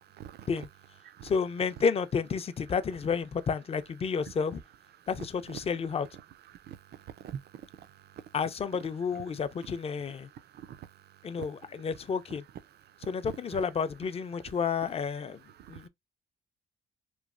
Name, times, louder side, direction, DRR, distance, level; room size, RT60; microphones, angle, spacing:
voice 1, 0.2-0.5 1.0-1.3 6.6-8.2 10.5-10.9 11.4-11.5 13.5-13.6 15.6-15.9, right 9 dB, 55° right, 0.4 m, -45 dB
voice 2, 1.2-4.6 5.1-6.1 8.3-10.3 11.2-12.4 13.1-15.4 15.7-15.9, left 6 dB, 30° left, 0.4 m, -31 dB
3.1 x 2.3 x 2.4 m
cardioid pair, 90°, 20 cm